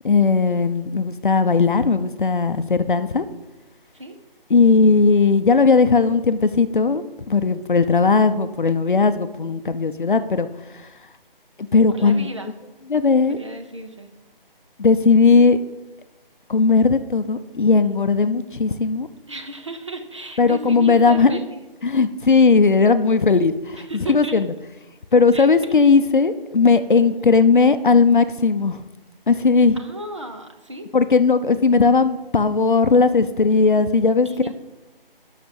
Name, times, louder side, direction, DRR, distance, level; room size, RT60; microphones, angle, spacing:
voice 1, 0.0-3.3 4.5-10.5 11.7-12.3 12.9-13.4 14.8-15.6 16.5-19.1 20.4-21.4 21.8-24.5 25.1-28.8 29.3-29.8 30.9-34.3, left 4 dB, 55° left, 11 dB, 0.7 m, -17 dB
voice 2, 11.9-12.5 13.3-14.1 19.3-21.6 23.7-24.4 25.3-25.7 27.2-27.3 29.7-30.9 34.2-34.5, right 2 dB, 30° right, 6 dB, 0.8 m, -34 dB
13.0 x 5.9 x 5.3 m, 1.1 s
figure-of-eight pair, 170°, 29 cm